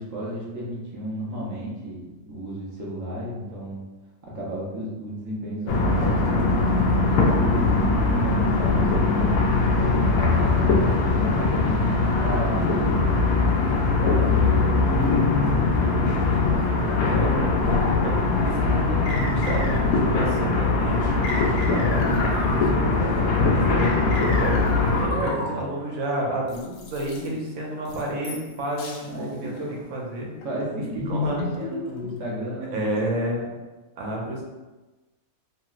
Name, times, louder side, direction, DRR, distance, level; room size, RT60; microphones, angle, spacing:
voice 1, 0.0-3.8 4.2-6.6 7.0-10.7 11.1-13.4 13.7-14.6 25.1-25.6 29.1-29.8 30.4-33.5, right 1 dB, 20° right, -6 dB, 0.5 m, -33 dB
sound 1, 5.7-25.1, left 3 dB, 90° left, 1.0 m, -21 dB
voice 2, 14.1-14.7 15.3-16.5 17.0-18.2 18.4-24.7 25.0-29.5 29.9-30.3 31.1-31.4 32.7-33.4 34.0-34.4, right 1 dB, 85° right, -2 dB, 1.1 m, -31 dB
sound 2, 19.1-20.1 21.2-23.0 23.8-25.8 26.5-27.3 27.8-28.5 28.8-29.1 29.6-29.8 30.4-32.3, left 3 dB, 60° left, 0.7 m, -33 dB
3.0 x 2.9 x 2.4 m, 1.2 s
omnidirectional pair, 1.4 m